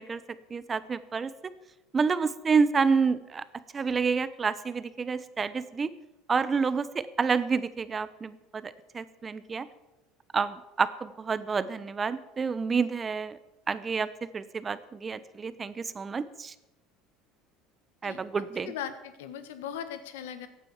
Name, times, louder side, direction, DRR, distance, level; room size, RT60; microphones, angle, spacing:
voice 1, 0.0-1.3 1.9-3.4 3.7-5.9 6.3-9.7 10.3-13.4 13.7-14.1 14.3-16.5 18.0-18.7, right 5 dB, 25° right, 15 dB, 0.9 m, -29 dB
voice 2, 18.0-20.5, left 9 dB, 85° left, 11 dB, 1.4 m, -39 dB
15.5 x 8.9 x 7.2 m, 0.97 s
supercardioid pair, 95°, 0 cm